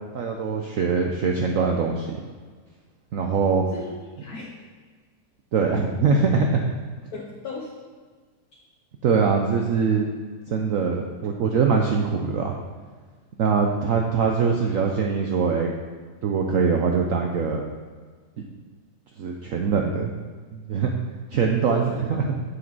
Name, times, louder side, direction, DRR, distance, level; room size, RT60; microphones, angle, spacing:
voice 1, 0.1-2.2 3.1-3.6 5.5-6.6 9.0-10.1 10.5-12.6 13.4-15.7 16.2-17.6 19.2-20.1 20.5-20.9 21.3-22.3, right 5 dB, 60° right, 2 dB, 1.0 m, -22 dB
voice 2, 3.5-4.7 7.1-7.8 21.6-22.3, left 3 dB, 65° left, -3 dB, 1.6 m, -36 dB
8.5 x 7.4 x 4.1 m, 1.5 s
omnidirectional pair, 1.8 m